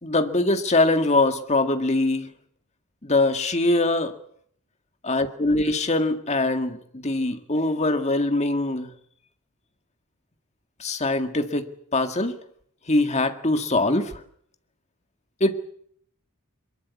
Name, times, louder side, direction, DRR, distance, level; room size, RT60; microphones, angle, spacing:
voice 1, 0.0-2.3 3.0-4.2 5.1-8.9 10.8-12.4 12.9-14.2 15.4-15.5, left 2 dB, 30° left, 7 dB, 1.9 m, -23 dB
23.5 x 22.5 x 8.4 m, 0.66 s
head